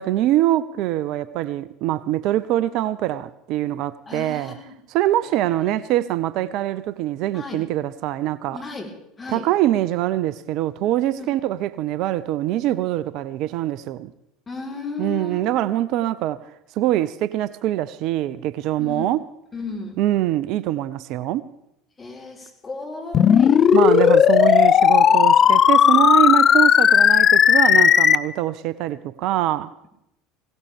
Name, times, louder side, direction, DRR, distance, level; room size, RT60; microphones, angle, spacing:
voice 1, 0.0-4.5 4.9-8.6 9.3-14.1 15.0-16.4 16.8-19.2 20.0-21.4 23.7-29.7, right 14 dB, 55° right, 0.5 m, -23 dB
voice 2, 4.1-4.7 5.2-5.7 7.3-7.6 8.5-8.9 9.2-9.5 11.2-11.3 14.5-15.4 18.8-19.1 19.5-20.0 22.0-23.6, left 3 dB, 25° left, 4.1 m, -34 dB
sound 1, 23.1-28.2, left 8 dB, 40° left, 0.6 m, -14 dB
19.0 x 17.0 x 3.5 m
hypercardioid pair, 70°, 0 cm